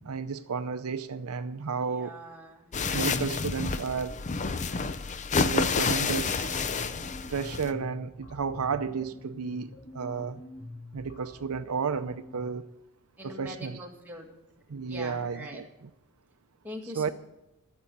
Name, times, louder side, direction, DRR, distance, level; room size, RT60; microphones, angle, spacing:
voice 1, 0.0-2.2 2.9-4.2 5.4-6.6 7.3-10.4 10.9-12.7 13.2-13.8 14.7-15.9 16.9-17.1, right 5 dB, 85° right, 0.6 m, -32 dB
voice 2, 1.8-2.7 3.2-3.3 3.6-3.8 13.2-14.3 14.9-15.6 16.6-17.1, equal, 10° right, 2.0 m, -43 dB
sound 1, 2.7-7.7, left 4 dB, 35° left, 0.6 m, -29 dB
sound 2, 5.6-12.6, left 1 dB, 60° left, 2.6 m, -47 dB
12.5 x 7.0 x 9.8 m
head